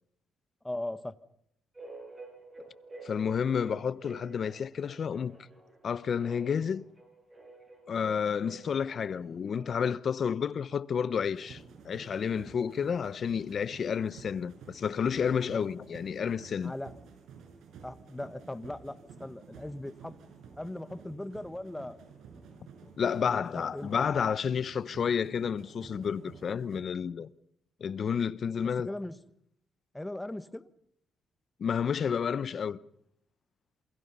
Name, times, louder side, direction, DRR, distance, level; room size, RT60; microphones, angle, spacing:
voice 1, 0.6-1.1 15.5-15.6 16.6-16.9 17.8-20.1 20.6-22.0 23.2-24.0 28.8-29.2 29.9-30.7, left 1 dB, 10° left, 1.4 m, -39 dB
sound 1, 1.7-10.0, right 3 dB, 20° right, 8.0 m, -50 dB
voice 2, 3.0-5.4 5.8-6.8 7.9-16.7 23.0-27.3 27.8-28.9 31.6-32.8, left 7 dB, 50° left, 0.9 m, -30 dB
sound 2, 11.3-26.8, right 6 dB, 75° right, 6.5 m, -52 dB
28.0 x 22.5 x 5.6 m
cardioid pair, 90°, 0 cm